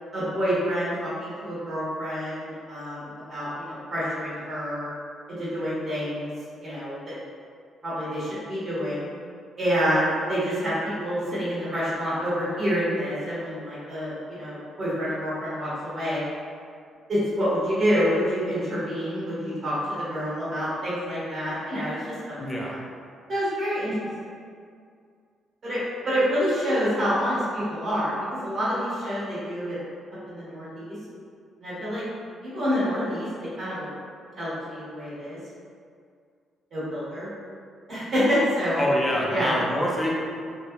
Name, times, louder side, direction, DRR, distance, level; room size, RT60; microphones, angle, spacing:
voice 1, 0.1-4.9 5.3-6.3 6.6-7.1 7.8-9.1 9.6-10.7 11.0-16.2 17.1-22.1 22.7-22.8 23.3-24.0 25.6-25.8 26.0-28.1 28.4-29.8 30.3-30.9 31.6-32.0 32.4-33.3 33.6-33.9 34.4-35.4 36.7-37.3 37.9-38.8 39.1-39.5, equal, 50° right, -10 dB, 1.4 m, -27 dB
voice 2, 22.4-22.8 38.8-40.1, equal, 10° left, -3 dB, 0.5 m, -26 dB
2.8 x 2.2 x 2.3 m, 2.2 s
cardioid pair, 90°, 0 cm